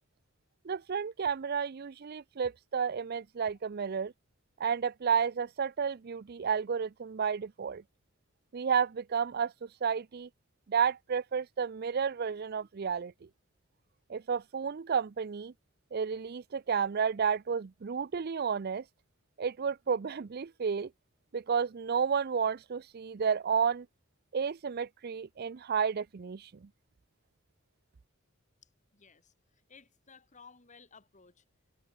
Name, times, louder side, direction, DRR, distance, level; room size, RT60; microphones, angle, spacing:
voice 1, 0.6-4.1 4.6-7.8 8.5-10.3 10.7-13.1 14.1-15.5 15.9-18.8 19.4-20.9 21.3-23.9 24.3-26.5, right 6 dB, 50° right, 0.5 m, -31 dB
voice 2, 28.9-29.3 29.7-31.4, left 5 dB, 35° left, 2.4 m, -57 dB
open air
head